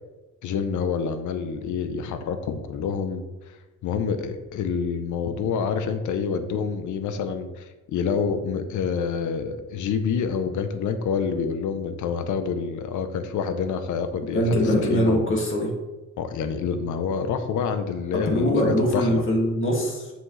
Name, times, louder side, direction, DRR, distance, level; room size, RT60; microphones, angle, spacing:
voice 1, 0.4-3.6 3.8-15.3 16.2-19.2, left 6 dB, 80° left, 9 dB, 0.8 m, -27 dB
voice 2, 14.3-15.7 18.1-20.1, equal, 40° left, -2 dB, 2.2 m, -22 dB
7.0 x 6.4 x 3.3 m, 1.1 s
cardioid pair, 90°, 30 cm